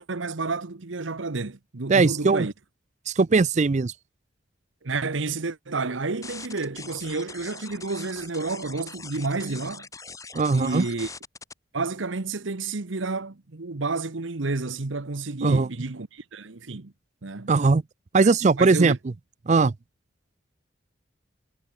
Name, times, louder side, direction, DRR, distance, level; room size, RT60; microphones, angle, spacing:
voice 1, 0.0-2.5 4.8-9.9 10.5-11.1 11.7-16.9 17.2-17.5 18.6-19.0, right 3 dB, 80° right, 1.1 m, -30 dB
voice 2, 1.9-2.4 3.1-3.9 10.3-10.9 15.4-15.7 17.5-17.8 18.1-19.0 19.5-19.7, right 4 dB, 35° right, 0.4 m, -19 dB
sound 1, 6.2-11.5, left 4 dB, 15° left, 2.0 m, -42 dB
head